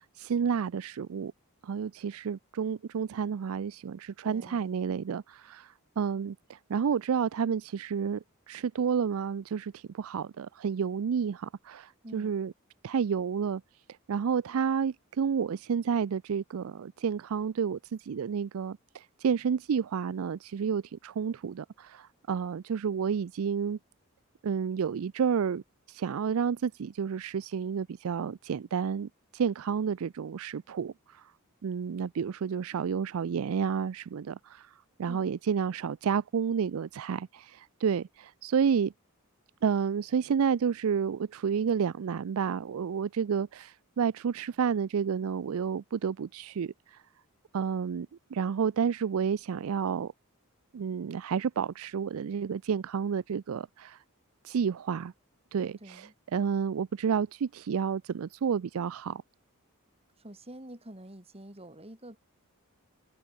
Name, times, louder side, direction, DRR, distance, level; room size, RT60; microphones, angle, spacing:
voice 1, 0.0-1.3 1.6-12.5 12.8-13.6 14.1-23.8 24.4-25.6 25.9-31.3 31.6-38.9 39.6-47.0 47.5-50.1 50.7-54.0 54.4-55.1 55.5-59.2, right 7 dB, 65° right, 0.4 m, -30 dB
voice 2, 4.2-4.8 12.0-12.3 35.1-35.3 55.8-56.1 60.2-62.2, right 1 dB, 25° right, 3.7 m, -47 dB
open air
head